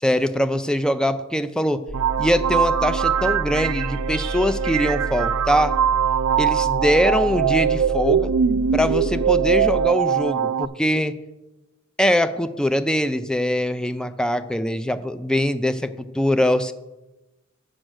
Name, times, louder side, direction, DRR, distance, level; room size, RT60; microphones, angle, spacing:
voice 1, 0.0-1.8 2.2-5.7 6.4-8.3 8.7-11.1 12.0-16.7, equal, 5° left, 11 dB, 0.4 m, -22 dB
sound 1, 1.9-9.9, right 1 dB, 70° left, 1.3 m, -30 dB
sound 2, 1.9-10.7, right 8 dB, 90° right, 0.4 m, -22 dB
7.7 x 6.3 x 6.3 m, 1.1 s
head